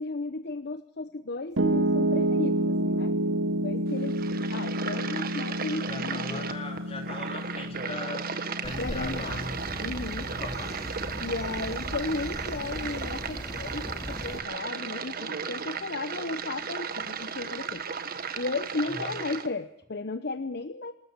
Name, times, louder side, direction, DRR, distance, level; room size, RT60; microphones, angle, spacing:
voice 1, 0.0-3.1 3.6-4.2 4.5-6.4 8.8-9.4 9.8-10.3 11.2-17.8 18.3-20.9, left 3 dB, 60° left, 10 dB, 0.9 m, -34 dB
Piano, 1.6-13.7, right 1 dB, 85° right, 1.3 m, -30 dB
sound 1, 3.9-19.5, right 6 dB, 50° right, 1.5 m, -35 dB
voice 2, 5.8-8.3 8.6-9.5 10.3-10.9 18.8-19.1, left 2 dB, 35° left, 2 dB, 3.2 m, -39 dB
sound 2, 8.6-14.4, equal, 15° left, 3.2 m, -38 dB
26.0 x 13.5 x 8.7 m, 0.70 s
head